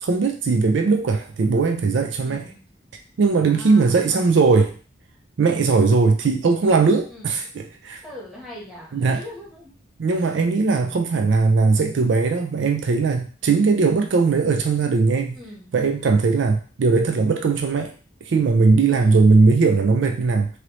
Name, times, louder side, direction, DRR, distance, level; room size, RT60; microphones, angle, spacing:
voice 1, 0.0-2.5 3.2-4.8 5.4-7.4 7.8-8.0 8.9-9.2 10.0-15.4 15.7-17.9 18.2-20.5, right 4 dB, 65° right, 5 dB, 0.4 m, -19 dB
voice 2, 2.2-2.6 3.4-4.6 7.1-7.4 8.0-9.8 10.1-10.3 15.3-15.7 18.9-19.4, left 1 dB, ahead, -6 dB, 1.1 m, -41 dB
3.1 x 2.6 x 3.0 m, 0.37 s
head